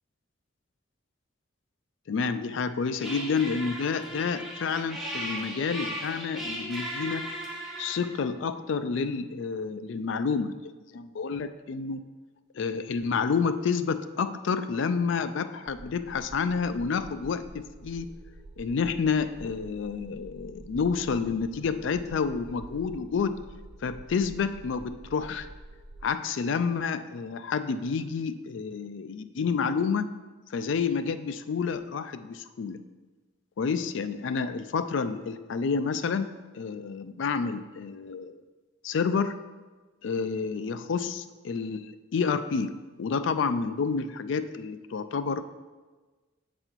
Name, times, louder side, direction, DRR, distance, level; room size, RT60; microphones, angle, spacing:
voice 1, 2.1-7.3 7.8-12.0 12.5-18.1 18.6-23.4 23.8-25.5 26.0-30.1 30.5-32.8 33.6-38.4 38.8-39.3 40.0-45.4, left 5 dB, 65° left, 11 dB, 0.4 m, -29 dB
sound 1, 2.9-8.1, right 1 dB, ahead, 1.2 m, -37 dB
sound 2, 15.7-26.1, right 2 dB, 30° right, 0.4 m, -48 dB
7.7 x 4.2 x 4.5 m, 1.3 s
head